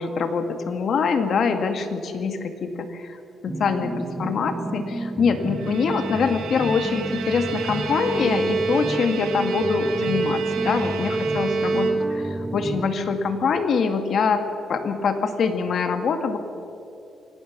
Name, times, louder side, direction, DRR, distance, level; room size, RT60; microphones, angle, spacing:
voice 1, 0.0-3.2 3.4-14.4 14.7-16.4, left 5 dB, 55° left, 7 dB, 2.0 m, -24 dB
sound 1, 3.5-12.9, right 1 dB, 5° right, 1.5 m, -31 dB
Bowed string instrument, 5.4-12.4, right 4 dB, 85° right, 2.3 m, -27 dB
27.0 x 18.0 x 6.1 m, 2.8 s
cardioid pair, 135°, 0 cm